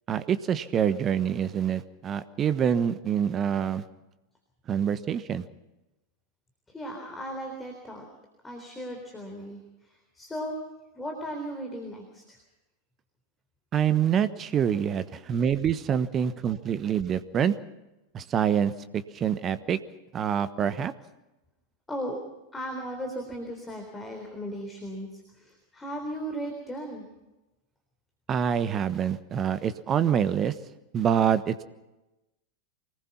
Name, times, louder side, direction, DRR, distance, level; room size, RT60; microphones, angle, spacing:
voice 1, 0.1-3.8 4.7-5.4 13.7-17.6 18.1-19.8 20.1-20.9 28.3-30.5 30.9-31.6, right 8 dB, 25° right, 14 dB, 1.2 m, -26 dB
voice 2, 6.7-8.1 8.4-10.6 11.0-12.4 21.9-22.2 22.5-27.1, equal, 10° left, 3 dB, 3.8 m, -36 dB
25.0 x 19.5 x 5.9 m, 1.0 s
figure-of-eight pair, 90°, 0 cm